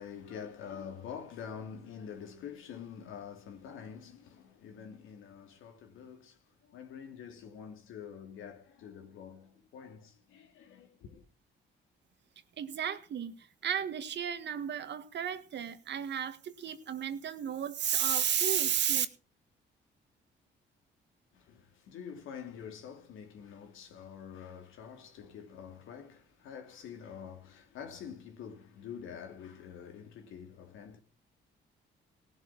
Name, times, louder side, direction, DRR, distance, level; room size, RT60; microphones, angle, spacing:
voice 1, 0.0-11.2 21.3-31.0, left 7 dB, 85° left, 2.7 m, -46 dB
voice 2, 12.6-19.1, right 9 dB, 60° right, 1.8 m, -33 dB
17.5 x 7.4 x 6.2 m
cardioid pair, 90°, 20 cm